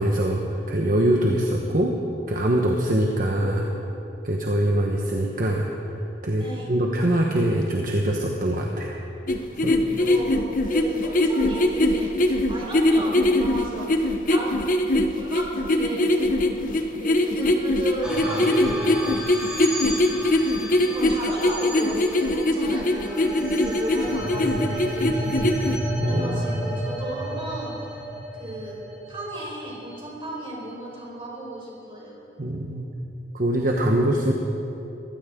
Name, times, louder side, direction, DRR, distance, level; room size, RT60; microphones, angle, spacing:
voice 1, 0.0-1.9 2.3-3.7 4.2-9.0 9.6-9.8 26.0-26.4 32.4-32.9 33.3-34.3, right 1 dB, 50° right, 0 dB, 1.2 m, -23 dB
voice 2, 3.3-3.8 6.4-6.7 10.0-14.5 15.1-16.6 17.0-19.3 20.0-20.3 20.8-25.5 26.0-27.7 28.3-28.8 29.1-32.2, right 1 dB, 30° right, -4 dB, 4.8 m, -34 dB
sound 1, 9.3-25.8, left 1 dB, 50° left, 1.0 m, -22 dB
sound 2, 18.0-30.5, equal, 5° right, 4.2 m, -32 dB
22.0 x 16.5 x 3.8 m, 2.9 s
head